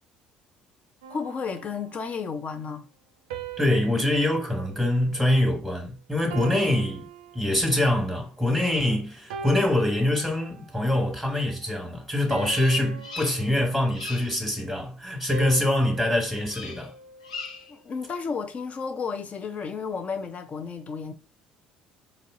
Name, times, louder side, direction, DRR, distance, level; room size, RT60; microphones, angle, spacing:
sound 1, 1.0-2.3 3.3-5.8 6.3-8.0 8.6-8.8 9.3-10.8 11.3-11.6 12.3-14.2 15.3-17.7, right 5 dB, 75° right, 0.4 m, -42 dB
voice 1, 1.1-2.9 17.7-21.1, left 5 dB, 40° left, 0.5 m, -32 dB
voice 2, 3.6-7.1 7.3-16.9, left 1 dB, 5° left, 1.3 m, -24 dB
Bird vocalization bird call bird song, 12.4-13.6 13.9-14.4 16.4-16.9 17.2-17.8, left 4 dB, 90° left, 0.4 m, -39 dB
4.1 x 2.6 x 2.5 m
hypercardioid pair, 55°, 4 cm